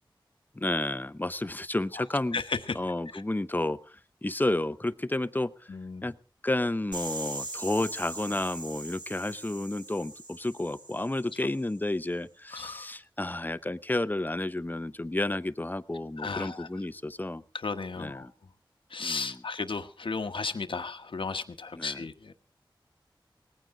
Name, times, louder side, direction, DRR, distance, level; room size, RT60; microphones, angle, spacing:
voice 1, 0.6-2.4 2.7-3.8 4.2-5.5 6.0-6.1 6.4-17.4 18.0-18.3 19.0-19.4 21.7-22.0, left 1 dB, 20° left, 14 dB, 0.7 m, -31 dB
voice 2, 5.7-6.0 12.5-12.9 16.2-16.7 17.6-18.3 18.9-22.3, left 4 dB, 80° left, 8 dB, 1.2 m, -34 dB
sound 1, 6.9-11.7, right 2 dB, 60° right, 2.3 m, -41 dB
19.0 x 15.5 x 3.8 m, 0.36 s
wide cardioid pair, 75°, 9 cm